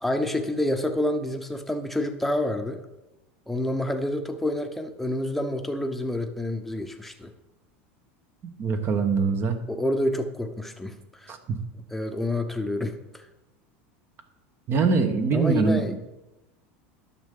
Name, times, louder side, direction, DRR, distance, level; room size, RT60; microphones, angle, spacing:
voice 1, 0.0-2.8 3.5-7.3 9.7-11.3 11.7-13.3 15.3-16.1, left 1 dB, 5° left, 5 dB, 0.9 m, -28 dB
voice 2, 8.6-9.6 11.3-11.6 14.7-15.9, right 5 dB, 40° right, 7 dB, 1.2 m, -23 dB
11.0 x 6.6 x 3.8 m, 0.98 s
supercardioid pair, 115°, 6 cm